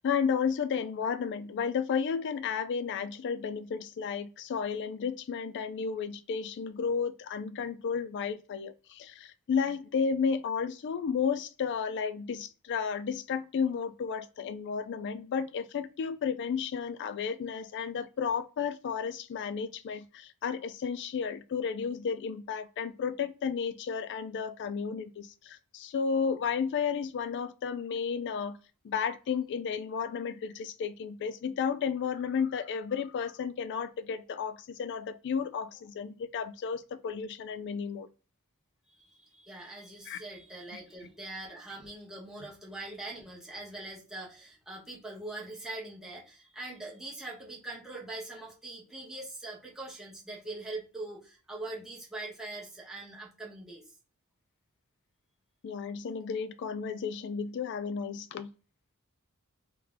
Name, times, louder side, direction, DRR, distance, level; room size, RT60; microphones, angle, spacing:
voice 1, 0.0-28.6 28.8-38.1 40.1-40.2 40.7-40.8 55.6-58.5, left 6 dB, 55° left, 0.3 m, -33 dB
voice 2, 39.0-53.8, right 2 dB, ahead, 1.1 m, -42 dB
3.3 x 2.1 x 3.4 m
head